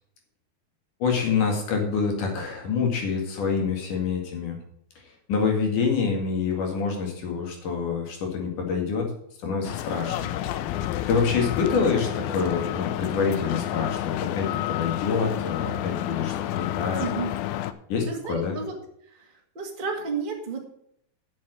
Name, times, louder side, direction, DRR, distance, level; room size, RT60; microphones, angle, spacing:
voice 1, 1.0-4.6 5.0-5.1 5.3-9.1 9.4-10.3 11.1-17.0 17.9-18.6, left 5 dB, 60° left, 2 dB, 3.4 m, -26 dB
sound 1, 9.6-17.7, left 13 dB, 80° left, 2.4 m, -30 dB
voice 2, 17.0-17.3 18.1-18.7 19.1-19.3 19.5-20.6, right 5 dB, 30° right, 1 dB, 0.8 m, -32 dB
8.0 x 7.4 x 7.5 m, 0.70 s
omnidirectional pair, 4.5 m